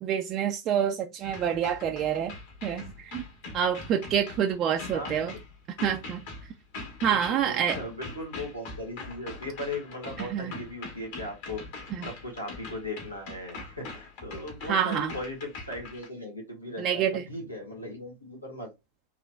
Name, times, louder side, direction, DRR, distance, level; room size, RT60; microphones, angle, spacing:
voice 1, 0.0-2.4 2.6-3.2 3.5-5.3 5.8-6.2 7.0-7.8 10.2-10.5 11.9-12.0 14.7-15.1 16.8-17.2, right 9 dB, 35° right, 0.4 m, -27 dB
sound 1, 1.2-16.1, left 3 dB, 50° left, 1.8 m, -42 dB
voice 2, 4.9-5.4 7.1-11.6 12.2-18.7, left 1 dB, 85° left, 1.6 m, -38 dB
3.7 x 3.1 x 2.2 m
figure-of-eight pair, 90°, 0 cm